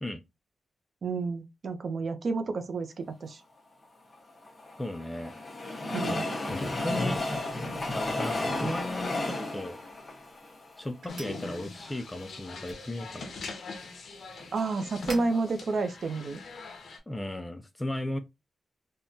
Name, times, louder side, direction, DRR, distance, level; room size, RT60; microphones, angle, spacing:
voice 1, 1.0-3.4 5.9-6.2 14.5-16.4, right 3 dB, 50° right, 0.5 m, -30 dB
Train, 4.1-11.4 11.9-12.0 12.2-12.3, left 2 dB, 30° left, 0.8 m, -33 dB
voice 2, 4.8-5.4 6.1-6.2 6.5-7.2 7.9-9.8 10.8-13.3 17.1-18.2, left 1 dB, 10° left, 0.3 m, -36 dB
sound 1, 9.6-16.8, right 2 dB, 85° right, 1.4 m, -52 dB
sound 2, 11.1-17.0, left 3 dB, 65° left, 0.7 m, -42 dB
3.6 x 2.1 x 2.5 m
wide cardioid pair, 160°, 0 cm